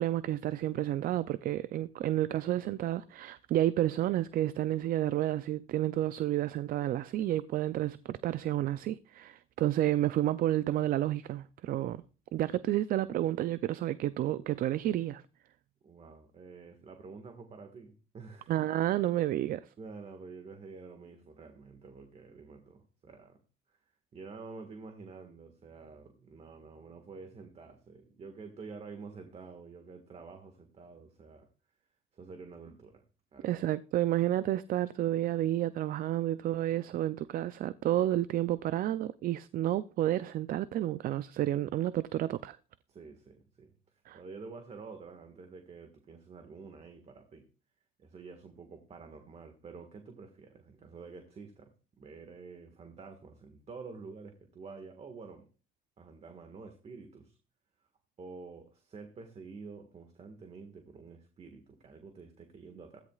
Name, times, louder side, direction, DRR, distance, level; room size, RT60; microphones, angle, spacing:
voice 1, 0.0-12.0 12.3-15.2 18.5-19.7 33.4-42.6 44.1-44.2, right 13 dB, 60° right, 0.4 m, -30 dB
voice 2, 15.8-18.5 19.8-23.4 23.7-23.8 24.1-31.5 32.1-33.0 33.3-33.6 42.9-43.7 44.1-47.5 48.0-51.7 52.0-55.5 56.0-57.4 58.2-63.0, right 4 dB, 40° right, 1.7 m, -49 dB
16.0 x 14.0 x 2.4 m
cardioid pair, 110°, 17 cm